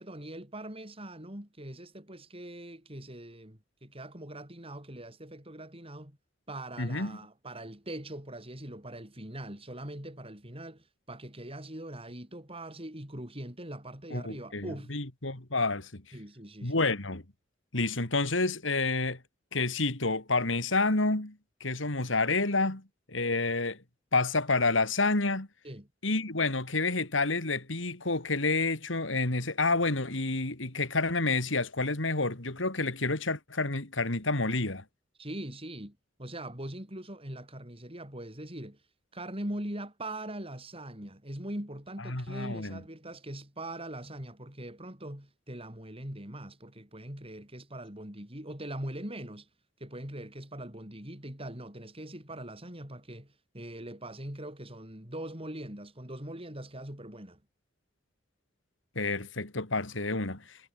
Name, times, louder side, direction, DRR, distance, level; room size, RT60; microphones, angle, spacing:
voice 1, 0.0-6.2 6.5-15.0 16.1-16.8 25.6-25.9 35.2-38.8 39.1-49.5 49.8-57.4, right 1 dB, 30° right, 6.5 m, -42 dB
voice 2, 6.8-7.2 14.1-16.0 16.6-17.2 17.7-19.2 19.5-22.8 23.1-23.8 24.1-25.5 26.0-34.8 42.1-42.8 58.9-60.4, left 3 dB, 80° left, 3.2 m, -29 dB
head